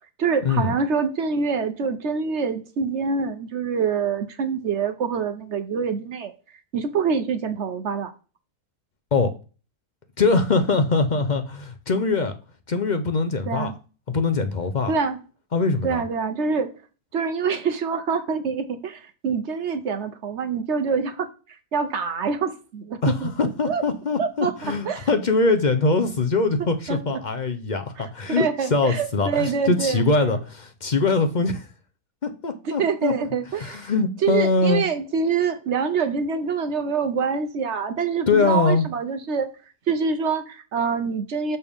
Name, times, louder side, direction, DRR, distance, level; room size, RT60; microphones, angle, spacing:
voice 1, 0.2-6.3 6.7-8.1 13.5-13.7 14.9-15.2 15.8-16.7 17.1-21.3 21.7-23.3 23.6-23.8 24.2-24.5 24.9-25.1 26.9-27.2 28.0-30.0 32.6-33.9 34.2-39.5 39.9-41.6, right 5 dB, 55° right, 0.9 m, -25 dB
voice 2, 10.2-12.3 12.7-13.7 14.1-14.9 15.5-16.0 23.0-23.1 23.4-31.7 32.2-33.1 33.6-34.8 38.3-38.8, left 3 dB, 45° left, 0.6 m, -22 dB
6.8 x 6.6 x 3.6 m
omnidirectional pair, 1.6 m